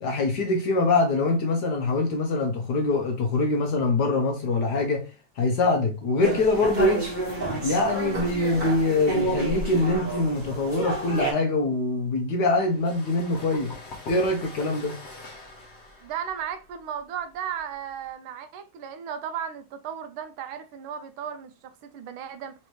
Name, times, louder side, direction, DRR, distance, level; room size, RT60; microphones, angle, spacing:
voice 1, 0.0-5.1 5.4-7.1 7.6-13.7 14.1-15.0, left 2 dB, 65° left, 1.1 m, -24 dB
sound 1, 6.2-11.3, right 2 dB, 25° right, 1.4 m, -29 dB
sound 2, 12.6-18.1, left 2 dB, 50° left, 0.8 m, -44 dB
voice 2, 16.0-22.5, right 8 dB, 75° right, 1.4 m, -35 dB
4.3 x 3.2 x 3.0 m
omnidirectional pair, 2.3 m